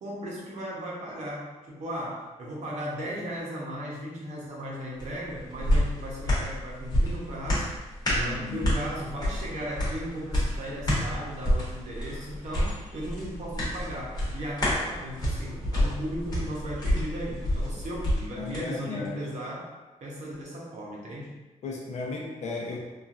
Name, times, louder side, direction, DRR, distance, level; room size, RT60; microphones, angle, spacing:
voice 1, 0.0-7.7 8.2-19.7 20.0-21.4, equal, 70° right, -4 dB, 0.8 m, -36 dB
sound 1, 5.0-18.6 19.0-19.1, equal, 30° left, 1.1 m, -29 dB
voice 2, 8.1-8.7 18.4-19.3 21.6-22.8, left 3 dB, 70° left, -2 dB, 0.6 m, -35 dB
3.0 x 2.4 x 2.5 m, 1.2 s
wide cardioid pair, 125°, 12 cm